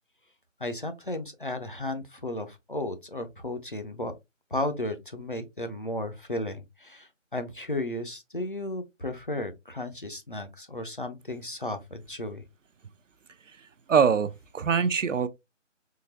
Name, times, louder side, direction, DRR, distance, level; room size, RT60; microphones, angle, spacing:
voice 1, 0.6-4.1 4.5-12.4, left 1 dB, 45° left, 0.5 m, -34 dB
voice 2, 13.9-15.3, right 6 dB, 75° right, 0.6 m, -23 dB
3.8 x 2.7 x 2.7 m
figure-of-eight pair, 165°, 39 cm